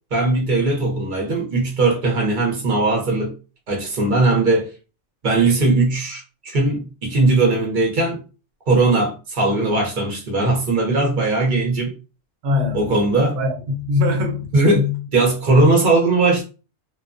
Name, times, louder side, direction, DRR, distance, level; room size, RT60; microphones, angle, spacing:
voice 1, 0.1-3.3 3.7-4.7 5.2-8.2 8.7-11.9 12.7-13.4 14.5-14.9 15.1-16.4, right 2 dB, 45° right, 0.8 m, -19 dB
voice 2, 12.4-12.9 13.3-15.0, left 3 dB, 70° right, 1.0 m, -22 dB
2.3 x 2.2 x 2.5 m
omnidirectional pair, 1.3 m